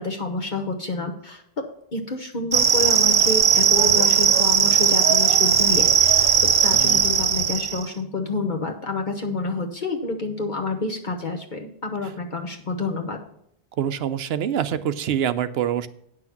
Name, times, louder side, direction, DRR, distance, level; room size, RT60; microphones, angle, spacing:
voice 1, 0.0-1.4 1.9-13.2, left 3 dB, 50° left, 3 dB, 1.0 m, -28 dB
sound 1, 2.5-7.8, right 7 dB, 45° right, 0.4 m, -18 dB
voice 2, 6.7-7.0 13.8-15.9, right 9 dB, 75° right, 13 dB, 0.8 m, -25 dB
9.3 x 6.2 x 5.8 m, 0.73 s
omnidirectional pair, 1.1 m